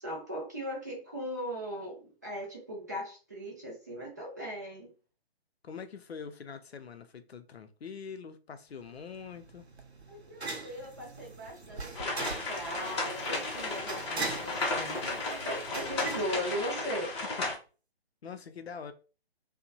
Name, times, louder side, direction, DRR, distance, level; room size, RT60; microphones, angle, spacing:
voice 1, 0.0-4.9 10.1-17.2, equal, 20° right, 0.4 m, -39 dB
voice 2, 5.6-9.6 17.4-17.5 18.2-18.9, left 6 dB, 75° left, 0.5 m, -44 dB
sound 1, 8.8-17.2, right 3 dB, 90° right, 0.6 m, -42 dB
sound 2, 11.9-17.5, left 2 dB, 25° left, 0.7 m, -34 dB
2.8 x 2.1 x 2.6 m
figure-of-eight pair, 140°, 32 cm